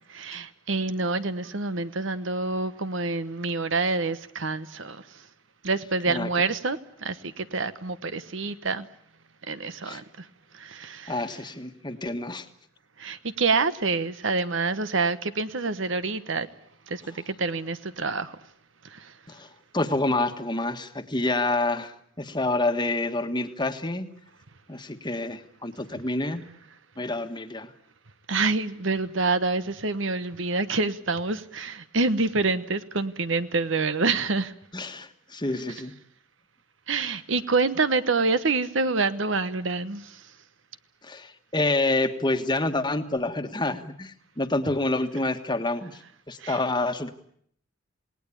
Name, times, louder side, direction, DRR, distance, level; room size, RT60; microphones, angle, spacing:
voice 1, 0.1-5.3 5.6-8.9 9.4-10.3 10.5-11.2 13.0-16.5 16.9-18.4 18.8-19.2 28.3-34.5 36.9-40.3 46.4-46.6, right 3 dB, 65° right, 13 dB, 1.1 m, -27 dB
voice 2, 11.1-12.5 19.3-19.5 19.7-24.1 24.7-26.4 27.0-27.7 34.7-35.9 41.0-46.0 46.3-47.1, left 2 dB, 20° left, 7 dB, 1.5 m, -28 dB
28.0 x 19.0 x 8.5 m, 0.66 s
head